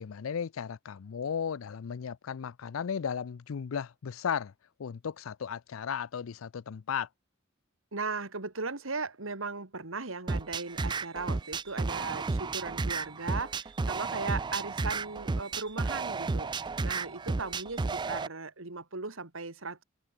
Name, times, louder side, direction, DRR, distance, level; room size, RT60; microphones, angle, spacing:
voice 1, 0.0-4.5 4.8-7.1, left 7 dB, 85° left, 0.5 m, -35 dB
voice 2, 7.9-19.8, right 4 dB, 80° right, 2.2 m, -37 dB
sound 1, 10.3-18.3, right 3 dB, 20° right, 0.4 m, -32 dB
open air
head